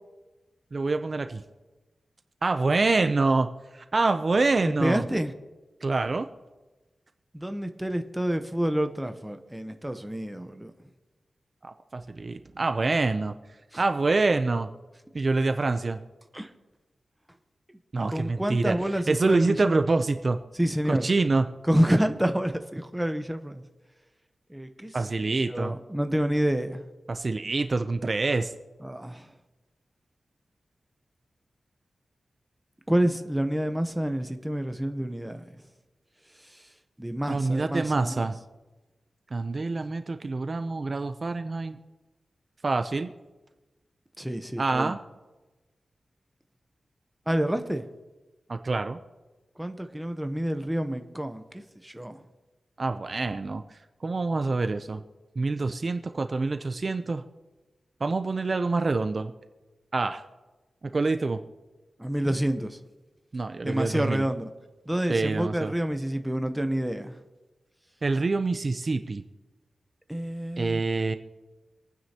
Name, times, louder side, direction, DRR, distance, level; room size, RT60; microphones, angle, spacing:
voice 1, 0.7-1.4 2.4-5.0 5.8-6.3 11.6-13.3 13.8-14.7 15.1-16.0 17.9-20.4 20.9-21.5 24.9-25.8 27.1-28.5 37.3-38.4 39.3-41.8 42.6-43.1 44.6-45.0 48.5-49.0 52.8-55.0 55.4-57.2 58.0-59.3 59.9-60.2 60.9-61.4 63.3-64.3 65.1-65.7 68.0-69.2 70.6-71.2, right 3 dB, 40° right, 8 dB, 0.5 m, -26 dB
voice 2, 4.8-5.3 7.3-10.7 16.3-16.5 18.1-19.8 20.6-21.0 21.7-23.6 24.5-24.9 25.5-26.8 28.8-29.2 32.9-35.4 37.0-38.3 44.2-44.9 47.3-47.8 49.6-51.4 51.8-52.2 62.0-62.8 63.6-64.5 64.9-67.1 70.1-70.8, right 1 dB, 5° right, 7 dB, 0.8 m, -28 dB
26.5 x 9.3 x 2.9 m, 1.2 s
wide cardioid pair, 125°, 0 cm